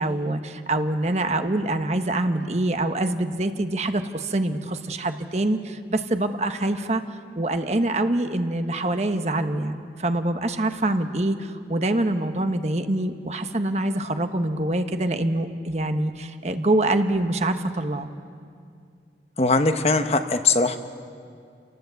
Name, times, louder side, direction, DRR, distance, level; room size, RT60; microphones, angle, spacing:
voice 1, 0.0-7.0 7.3-18.1, right 1 dB, 40° right, 8 dB, 1.1 m, -25 dB
voice 2, 19.4-20.8, left 3 dB, 35° left, 8 dB, 1.0 m, -20 dB
30.0 x 19.0 x 8.1 m, 2.3 s
head